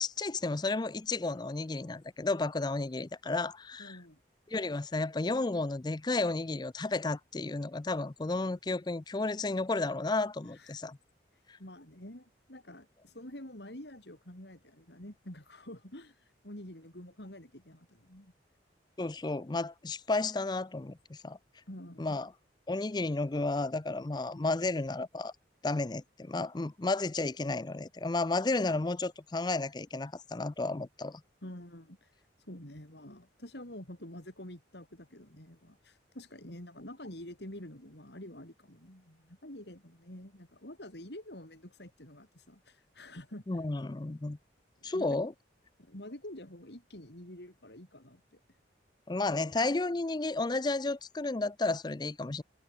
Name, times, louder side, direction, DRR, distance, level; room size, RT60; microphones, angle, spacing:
voice 1, 0.0-4.0 4.5-11.0 11.5-11.6 19.0-21.4 22.0-22.3 22.7-25.3 25.6-31.2 43.5-44.4 44.8-45.3 49.1-52.4, left 3 dB, 25° left, 0.5 m, -32 dB
voice 2, 3.8-4.2 10.4-10.8 11.3-18.3 21.7-22.2 31.4-43.6 44.8-45.3 45.8-48.6, left 1 dB, 65° left, 5.0 m, -48 dB
head